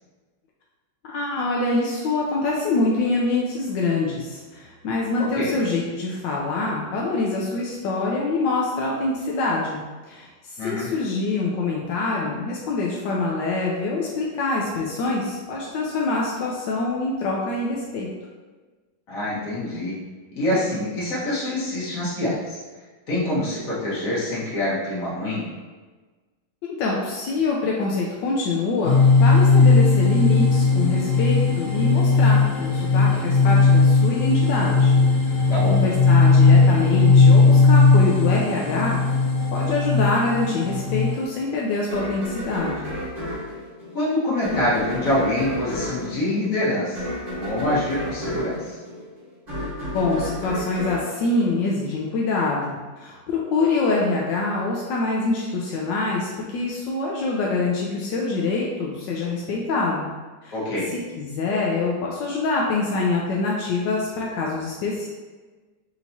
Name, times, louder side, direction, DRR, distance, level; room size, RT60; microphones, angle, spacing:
voice 1, 1.0-9.8 10.1-10.3 10.6-18.1 26.6-34.9 35.3-35.4 35.7-39.0 39.5-42.9 49.9-60.1 60.4-60.5 61.2-65.1, left 3 dB, 85° left, -3 dB, 1.3 m, -25 dB
voice 2, 5.2-5.5 10.6-10.9 19.1-19.9 20.4-22.6 23.1-25.4 35.5-35.8 43.9-47.0 47.4-48.8 60.5-60.9, left 1 dB, 50° left, -8 dB, 1.8 m, -25 dB
sound 1, 28.8-41.2, left 4 dB, 65° left, 1.5 m, -17 dB
sound 2, 41.9-52.1, left 1 dB, 25° right, 1.3 m, -32 dB
5.7 x 2.9 x 2.7 m, 1.3 s
omnidirectional pair, 2.0 m